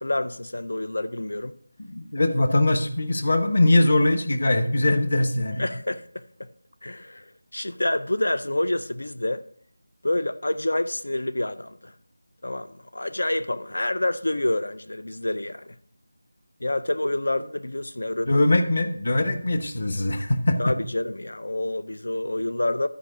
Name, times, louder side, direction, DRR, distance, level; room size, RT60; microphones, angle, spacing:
voice 1, 0.0-1.5 5.6-6.5 6.8-9.5 10.0-11.9 12.4-15.8 16.6-18.3 20.6-22.9, left 1 dB, 85° left, 0.5 m, -28 dB
voice 2, 1.8-5.7 18.3-20.8, left 1 dB, 40° left, 1.0 m, -21 dB
12.5 x 4.7 x 4.9 m
figure-of-eight pair, 180°, 0 cm